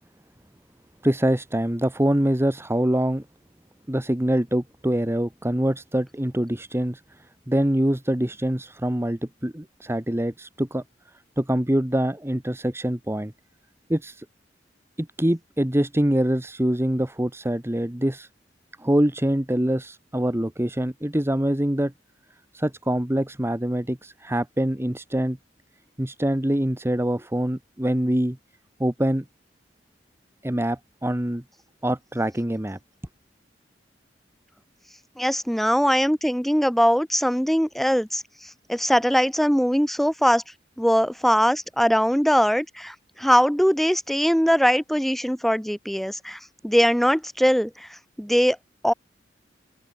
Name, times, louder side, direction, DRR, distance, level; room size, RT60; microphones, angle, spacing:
voice 1, 1.0-3.2 3.9-10.8 11.4-13.3 13.9-14.2 15.0-18.3 18.8-21.9 22.5-25.4 26.0-28.4 28.8-29.2 30.4-31.4 31.8-32.8, right 1 dB, 15° right, 1.3 m, -24 dB
voice 2, 35.2-38.2 38.7-40.4 40.8-47.9 48.2-48.6 48.8-48.9, equal, ahead, 2.2 m, -21 dB
open air
head